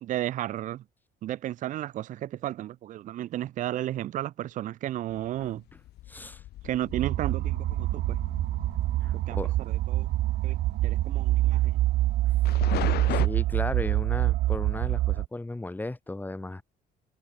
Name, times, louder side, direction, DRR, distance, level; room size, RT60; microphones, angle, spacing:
voice 1, 0.0-0.8 1.2-5.6 6.6-8.2 9.3-9.4 9.7-10.1 10.4-10.6 10.8-11.8, right 13 dB, 50° right, 0.4 m, -33 dB
sound 1, 5.1-13.3, left 15 dB, 70° left, 1.8 m, -38 dB
voice 2, 6.1-6.4 9.0-9.5 13.1-16.6, left 2 dB, 10° left, 2.1 m, -35 dB
sound 2, 6.9-15.3, right 16 dB, 70° right, 1.0 m, -26 dB
cardioid pair, 110°, 17 cm